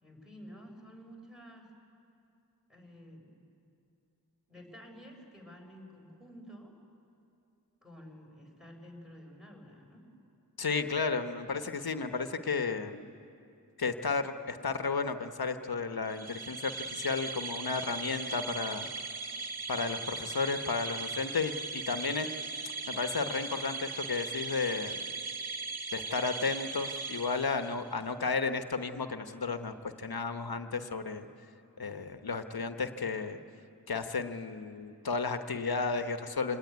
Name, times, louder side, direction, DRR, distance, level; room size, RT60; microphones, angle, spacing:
voice 1, 0.0-1.7 2.7-3.3 4.5-6.8 7.8-10.1, equal, ahead, 1 dB, 5.5 m, -51 dB
voice 2, 10.6-13.1 13.8-18.9 19.7-22.3 22.9-25.1 25.9-31.3 31.8-33.4 33.9-36.6, left 4 dB, 75° left, 8 dB, 1.2 m, -33 dB
sound 1, 16.1-27.9, right 4 dB, 80° right, 1.8 m, -39 dB
26.5 x 19.0 x 9.6 m, 2.6 s
wide cardioid pair, 65°, 37 cm